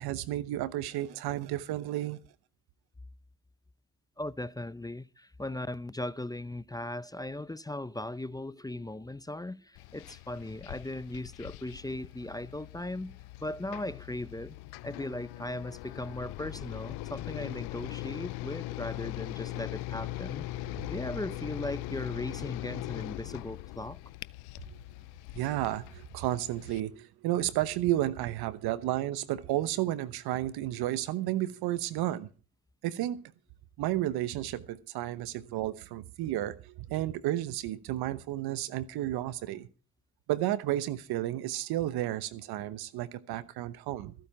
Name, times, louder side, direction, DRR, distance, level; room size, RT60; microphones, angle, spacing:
voice 1, 0.0-2.2 25.3-32.3 32.8-33.2 33.8-39.7 40.3-44.1, right 14 dB, 80° right, 1.0 m, -32 dB
voice 2, 4.2-13.1 13.4-14.6 14.8-20.5 20.9-24.0, left 1 dB, 10° left, 0.6 m, -38 dB
sound 1, 8.7-10.0 10.3-25.3 26.1-26.7, right 3 dB, 25° right, 6.8 m, -57 dB
sound 2, 9.7-26.8, left 19 dB, 85° left, 0.5 m, -41 dB
15.0 x 9.1 x 5.6 m
supercardioid pair, 55°, 37 cm